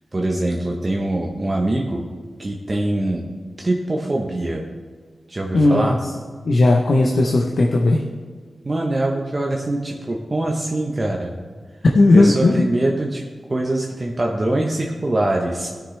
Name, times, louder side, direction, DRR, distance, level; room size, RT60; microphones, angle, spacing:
voice 1, 0.1-2.0 2.4-3.2 3.6-4.6 5.3-6.0 8.6-11.3 12.1-15.7, right 1 dB, 35° right, 0 dB, 1.0 m, -23 dB
voice 2, 5.5-5.9 6.5-8.0 11.9-12.6, left 2 dB, 70° left, 0 dB, 0.8 m, -15 dB
16.0 x 6.4 x 3.3 m, 1.5 s
cardioid pair, 70°, 0 cm